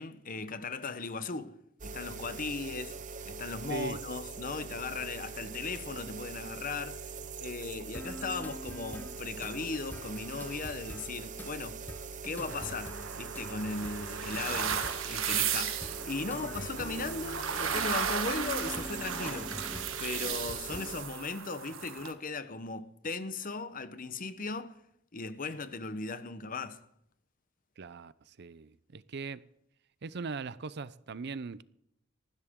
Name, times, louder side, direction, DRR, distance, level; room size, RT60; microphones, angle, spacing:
voice 1, 0.0-1.6 1.8-3.0 3.2-7.1 7.4-11.8 12.2-19.6 20.0-24.8 25.1-26.8, left 3 dB, 45° left, 1.0 m, -38 dB
sound 1, 1.8-21.0, right 5 dB, 40° right, 0.9 m, -43 dB
sound 2, 7.9-21.1, left 1 dB, 10° left, 0.8 m, -45 dB
sound 3, 12.5-22.1, right 7 dB, 80° right, 1.6 m, -35 dB
voice 2, 27.8-29.4 30.0-31.6, right 4 dB, 55° right, 0.6 m, -39 dB
19.5 x 15.5 x 3.7 m
head